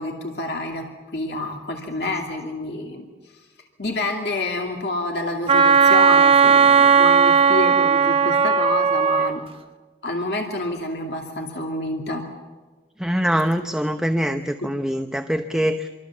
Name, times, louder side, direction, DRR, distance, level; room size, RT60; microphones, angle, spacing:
voice 1, 0.0-3.0 3.3-3.4 3.8-9.4 10.0-12.3 14.6-14.7, left 2 dB, 65° left, 1 dB, 2.5 m, -28 dB
Wind instrument woodwind instrument, 5.5-9.3, right 6 dB, 30° right, 1.0 m, -16 dB
voice 2, 13.0-15.9, equal, 5° right, 6 dB, 0.8 m, -23 dB
27.0 x 24.0 x 7.3 m, 1.3 s
head